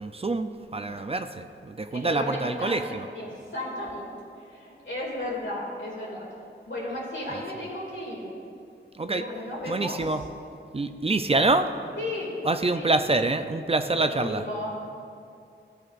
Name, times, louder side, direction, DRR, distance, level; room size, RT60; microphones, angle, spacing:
voice 1, 0.0-3.1 8.9-9.2 9.7-10.2 10.7-11.7 12.4-14.4, right 2 dB, 30° right, 8 dB, 0.4 m, -26 dB
voice 2, 1.9-6.3 6.7-8.3 9.1-10.2 12.0-12.3 12.7-12.9 14.0-14.7, left 1 dB, 80° left, -4 dB, 2.4 m, -34 dB
14.0 x 7.8 x 2.5 m, 2.5 s
wide cardioid pair, 60°, 19 cm